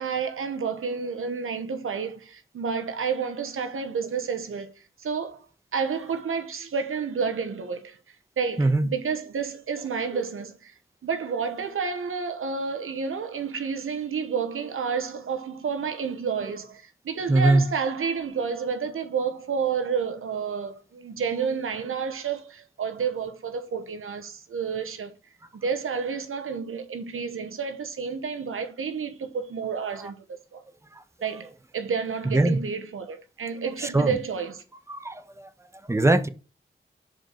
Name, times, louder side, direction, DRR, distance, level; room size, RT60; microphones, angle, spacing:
voice 1, 0.0-4.7 5.0-5.5 5.7-8.0 8.4-10.7 11.0-25.1 25.5-30.2 30.5-30.6 31.2-34.6, right 6 dB, 85° right, 1.0 m, -30 dB
voice 2, 8.6-8.9 10.1-10.2 17.3-17.7 30.0-30.1 30.9-31.0 32.3-32.6 33.8-34.2 34.9-35.5 35.8-36.3, right 2 dB, 15° right, 1.0 m, -22 dB
6.1 x 5.1 x 4.6 m
cardioid pair, 45°, 21 cm